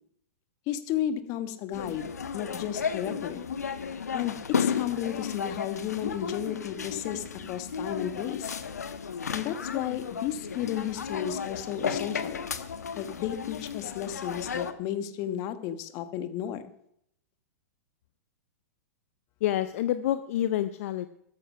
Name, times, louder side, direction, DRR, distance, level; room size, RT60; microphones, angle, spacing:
voice 1, 0.7-3.4 4.1-8.5 9.3-12.5 12.9-16.7, left 10 dB, 40° left, 11 dB, 1.4 m, -33 dB
sound 1, 1.7-14.7, left 6 dB, 90° left, 1.1 m, -34 dB
voice 2, 19.4-21.1, left 12 dB, 60° left, 12 dB, 0.7 m, -28 dB
13.0 x 9.8 x 5.6 m, 0.73 s
hypercardioid pair, 115°, 9 cm